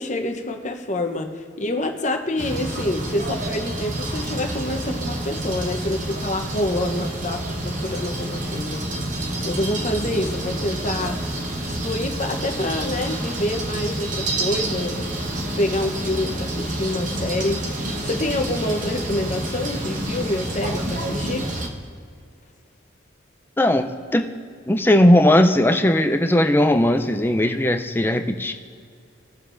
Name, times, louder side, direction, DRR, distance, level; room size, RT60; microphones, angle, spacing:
voice 1, 0.0-9.1 9.4-11.2 11.7-15.1 15.6-21.5, left 1 dB, 35° left, 5 dB, 0.8 m, -27 dB
sound 1, 2.4-21.7, right 1 dB, 40° right, 1.0 m, -28 dB
voice 2, 23.6-24.2 24.7-28.5, left 1 dB, 10° left, 5 dB, 0.4 m, -18 dB
19.5 x 7.1 x 2.5 m, 2.3 s
head